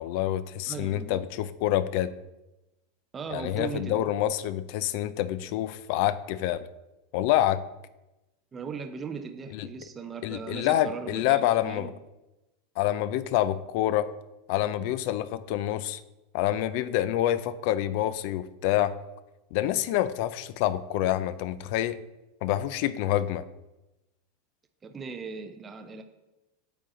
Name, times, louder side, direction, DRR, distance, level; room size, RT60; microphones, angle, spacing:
voice 1, 0.0-2.1 3.3-6.7 7.1-7.6 9.5-9.7 10.2-11.9 12.8-14.1 14.5-16.0 16.3-19.0 19.5-22.0 22.4-23.4, left 13 dB, 50° left, 15 dB, 0.4 m, -27 dB
voice 2, 0.7-1.3 3.1-4.1 8.5-11.9 24.8-26.0, right 5 dB, 15° right, 6 dB, 0.5 m, -38 dB
8.7 x 8.4 x 3.8 m, 1.0 s
supercardioid pair, 170°, 0 cm